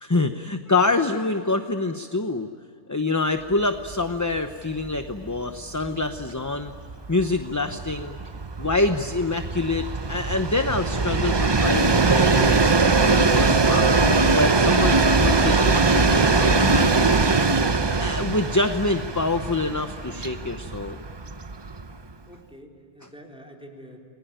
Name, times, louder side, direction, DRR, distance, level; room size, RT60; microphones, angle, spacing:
voice 1, 0.0-2.5 2.9-6.7 7.1-8.2 8.6-13.9 14.3-17.3 18.0-21.0, left 3 dB, 15° left, 7 dB, 0.8 m, -26 dB
Train, 3.9-4.0 4.3-4.4 4.7-22.1, right 3 dB, 25° right, 0.7 m, -21 dB
voice 2, 22.1-24.0, equal, 5° right, 0 dB, 4.2 m, -46 dB
29.5 x 21.5 x 9.0 m, 2.4 s
omnidirectional pair, 1.3 m